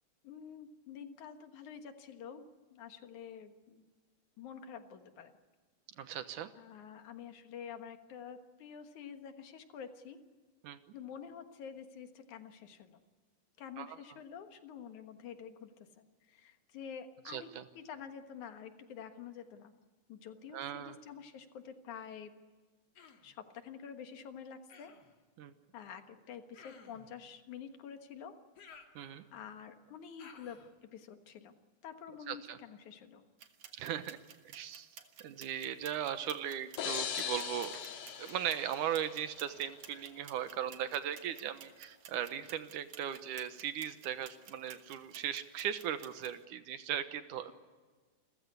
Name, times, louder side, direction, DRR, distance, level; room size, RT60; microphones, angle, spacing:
voice 1, 0.2-2.5 2.7-3.9 4.4-5.3 6.6-10.2 10.9-13.0 13.6-17.5 17.7-19.7 20.1-22.3 23.2-24.9 25.7-28.3 29.3-31.6 31.8-33.2, left 7 dB, 70° left, 7 dB, 2.8 m, -48 dB
voice 2, 6.0-6.5 10.6-10.8 13.8-14.0 17.3-17.7 20.5-21.0 25.4-25.5 29.0-29.2 32.3-32.6 33.7-34.2 34.4-34.9 35.2-37.7 38.2-47.5, right 10 dB, 80° right, 11 dB, 2.6 m, -38 dB
Human voice, 23.0-23.3 24.7-25.2 26.5-27.1 28.6-29.5 30.2-30.7, left 5 dB, 55° left, 3.0 m, -56 dB
sound 1, 33.4-46.4, right 8 dB, 60° right, 2.5 m, -55 dB
sound 2, 36.8-39.5, left 8 dB, 85° left, 3.3 m, -40 dB
28.5 x 15.0 x 9.7 m, 1.4 s
omnidirectional pair, 3.7 m